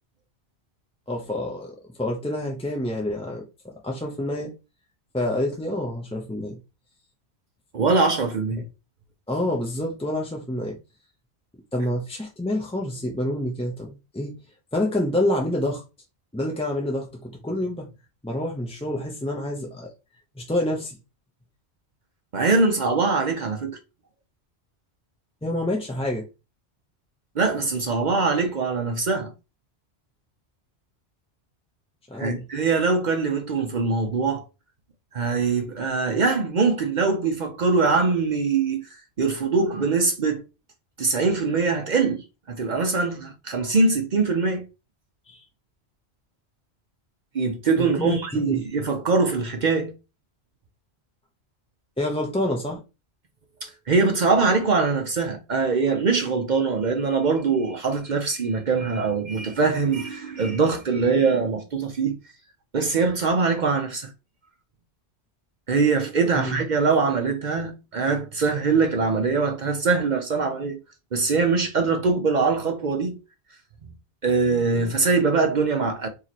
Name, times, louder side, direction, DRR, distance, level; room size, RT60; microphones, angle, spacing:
voice 1, 1.1-4.5 5.1-6.6 8.6-8.7 9.3-10.8 11.7-14.4 14.7-15.8 16.3-17.9 18.2-19.9 20.4-21.0 25.4-26.3 32.1-32.5 45.3-45.4 47.8-48.7 52.0-52.8 66.3-66.7, left 1 dB, 10° left, 0.4 m, -28 dB
voice 2, 7.7-8.6 22.3-23.8 27.4-29.3 32.2-34.4 35.1-38.9 39.2-40.4 41.0-44.6 47.3-49.9 53.6-62.2 62.7-64.1 65.7-70.8 71.1-73.1 73.8-73.9 74.2-76.1, right 4 dB, 50° right, 0.7 m, -23 dB
3.0 x 2.9 x 4.1 m
omnidirectional pair, 1.1 m